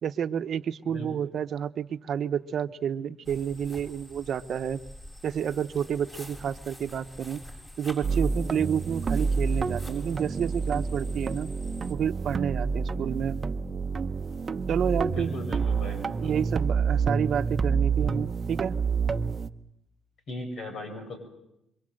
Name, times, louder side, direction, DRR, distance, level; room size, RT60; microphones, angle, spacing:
voice 1, 0.0-4.8 5.2-7.4 7.8-11.5 11.9-13.4 14.7-15.3 16.2-18.8, right 8 dB, 60° right, 11 dB, 1.0 m, -30 dB
sound 1, 3.2-11.9, equal, 20° left, 7.4 m, -47 dB
sound 2, 8.0-19.5, right 5 dB, 40° right, 0.9 m, -28 dB
voice 2, 15.1-16.3 20.3-21.2, left 1 dB, 60° left, 5 dB, 7.2 m, -37 dB
26.5 x 23.5 x 7.8 m, 0.86 s
cardioid pair, 90°, 0 cm